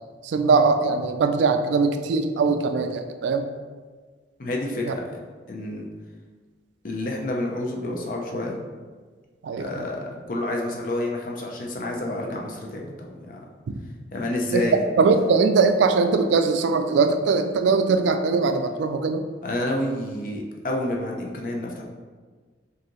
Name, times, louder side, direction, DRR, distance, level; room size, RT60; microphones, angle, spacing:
voice 1, 0.2-3.5 4.9-5.0 9.4-9.8 14.5-14.6 15.0-19.2, right 4 dB, 75° right, 8 dB, 0.3 m, -21 dB
voice 2, 4.4-5.2 5.5-5.9 6.8-8.6 9.6-13.4 14.1-14.8 19.4-21.8, left 1 dB, 45° left, 0 dB, 0.6 m, -29 dB
4.8 x 2.7 x 3.0 m, 1.5 s
head